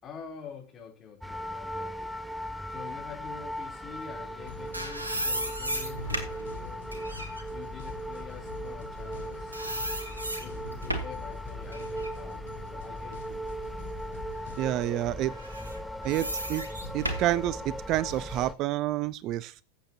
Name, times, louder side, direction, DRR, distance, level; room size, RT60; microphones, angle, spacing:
voice 1, 0.0-2.1 2.7-7.1 7.5-9.7 10.4-13.5 18.1-18.5, left 6 dB, 25° left, 3.5 m, -47 dB
sound 1, 1.2-18.5, equal, ahead, 0.7 m, -38 dB
sound 2, 4.3-9.2 9.5-11.3 11.7-13.7 14.2-14.3 15.3-18.3, right 1 dB, 80° right, 1.6 m, -36 dB
sound 3, 4.5-15.1, left 8 dB, 60° left, 1.3 m, -48 dB
voice 2, 14.6-15.3 16.0-16.7 16.9-19.5, right 14 dB, 35° right, 0.4 m, -29 dB
15.5 x 7.8 x 2.9 m
figure-of-eight pair, 90°, 0 cm